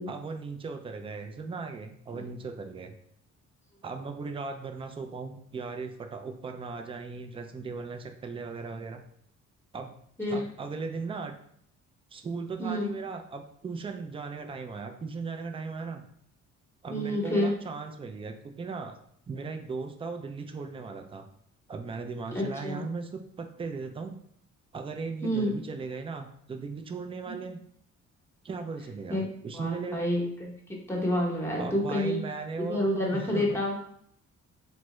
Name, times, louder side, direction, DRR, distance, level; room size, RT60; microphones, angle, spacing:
voice 1, 0.1-2.9 3.8-9.0 9.7-10.0 10.3-11.4 12.1-16.0 16.8-19.0 19.3-21.3 21.7-24.2 24.7-27.6 28.4-30.1 31.6-33.6, right 4 dB, 20° right, 6 dB, 0.3 m, -37 dB
voice 2, 12.6-12.9 16.9-17.5 22.3-22.8 25.2-25.6 27.3-27.4 29.1-29.2 29.5-32.2 32.6-33.8, left 1 dB, 10° left, -1 dB, 0.9 m, -29 dB
3.3 x 2.0 x 3.0 m, 0.68 s
cardioid pair, 90°, 30 cm